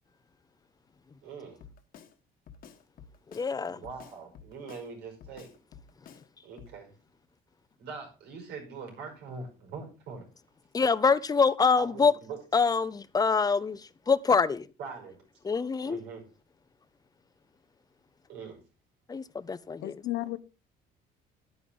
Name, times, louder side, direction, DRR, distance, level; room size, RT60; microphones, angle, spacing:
voice 1, 1.2-1.6 3.7-5.5 6.4-6.9 7.8-10.2 11.8-12.4 14.8-15.2 15.9-16.2 18.3-18.6, right 4 dB, 85° right, 5.2 m, -42 dB
Drum kit, 1.6-2.1 2.5-3.5 3.8-4.9 5.2-6.3 6.6-6.8, left 7 dB, 60° left, 1.4 m, -51 dB
voice 2, 3.3-3.8 10.7-12.1 12.5-13.8 14.1-14.7 15.4-16.0 19.1-20.0, left 5 dB, 20° left, 0.6 m, -25 dB
voice 3, 19.8-20.4, left 16 dB, 80° left, 0.8 m, -33 dB
10.0 x 9.3 x 3.8 m
cardioid pair, 110°, 17 cm